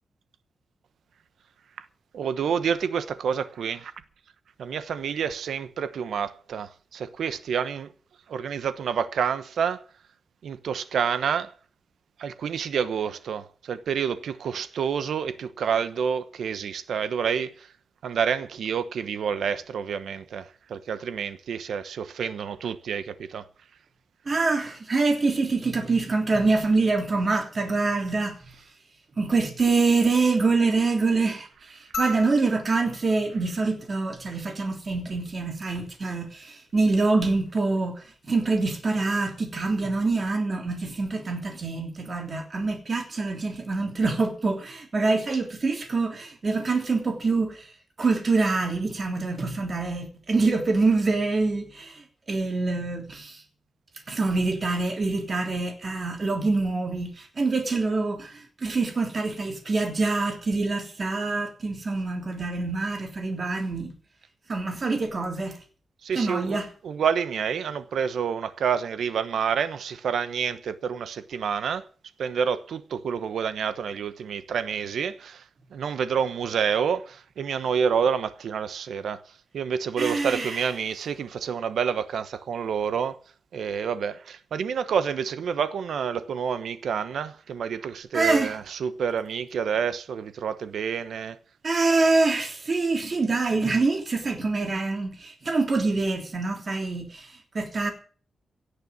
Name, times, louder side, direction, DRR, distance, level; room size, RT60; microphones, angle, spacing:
voice 1, 2.1-3.9 4.6-7.9 8.3-9.8 10.4-11.5 12.2-17.7 18.0-23.5 66.0-71.8 72.2-75.4 75.7-79.2 79.5-83.2 83.5-91.4, right 7 dB, 90° right, 1.1 m, -28 dB
voice 2, 24.3-28.4 29.2-31.5 32.0-47.7 48.0-52.0 52.3-53.4 54.1-63.9 64.5-65.6 66.1-66.7 80.0-80.6 88.1-88.6 91.6-97.3 97.5-97.9, right 3 dB, 40° right, 3.2 m, -25 dB
sound 1, 31.9-34.5 36.1-36.2, equal, 70° left, 3.4 m, -37 dB
17.0 x 6.7 x 8.7 m
wide cardioid pair, 135°, 0 cm